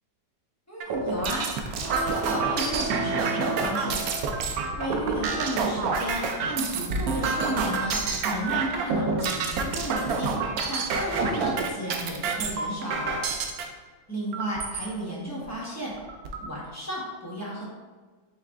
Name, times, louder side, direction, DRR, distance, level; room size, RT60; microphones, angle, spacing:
voice 1, 0.7-1.5 2.3-4.2 4.8-10.4 10.7-13.2 14.1-15.9 16.4-17.6, right 1 dB, 15° left, -6 dB, 0.7 m, -33 dB
sound 1, 0.8-13.6 14.3-14.9 15.4-15.5 15.8-16.5, right 4 dB, 70° right, 0.9 m, -28 dB
sound 2, 1.8-4.7, right 3 dB, 55° right, 1.4 m, -34 dB
5.5 x 2.4 x 3.5 m, 1.4 s
omnidirectional pair, 1.9 m